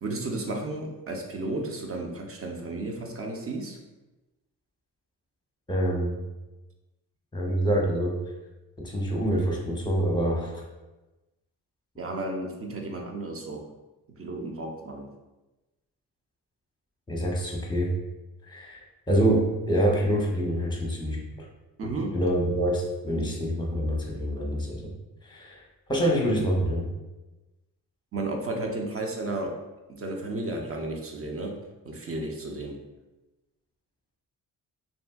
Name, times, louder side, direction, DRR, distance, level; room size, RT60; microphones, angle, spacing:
voice 1, 0.0-3.8 12.0-13.7 14.2-15.1 21.8-22.2 28.1-29.6 29.9-32.8, right 2 dB, 35° right, 2 dB, 0.5 m, -33 dB
voice 2, 5.7-6.2 7.3-8.2 8.8-10.6 17.1-17.9 18.5-18.8 19.1-21.2 22.1-24.8 25.3-25.6 25.9-26.9, right 1 dB, 10° left, -1 dB, 0.7 m, -26 dB
2.6 x 2.6 x 2.3 m, 1.1 s
hypercardioid pair, 45°, 42 cm